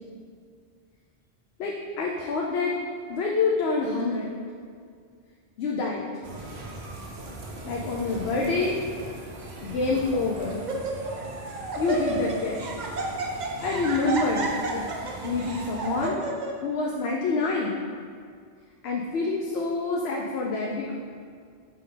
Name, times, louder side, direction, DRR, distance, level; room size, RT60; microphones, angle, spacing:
voice 1, 1.6-2.7 3.1-4.3 5.6-6.1 7.6-8.8 9.6-10.6 11.8-12.6 13.6-14.9 15.2-16.2 16.6-17.8 18.8-20.9, left 3 dB, 80° left, -2 dB, 0.9 m, -27 dB
sound 1, 6.2-16.1, right 1 dB, 85° right, 1.1 m, -39 dB
Laughter, 8.2-8.6 9.3-9.4 9.9-10.2 10.5-11.2 11.5-16.5, right 3 dB, 50° right, 0.8 m, -32 dB
5.5 x 5.3 x 3.8 m, 2.1 s
omnidirectional pair, 1.1 m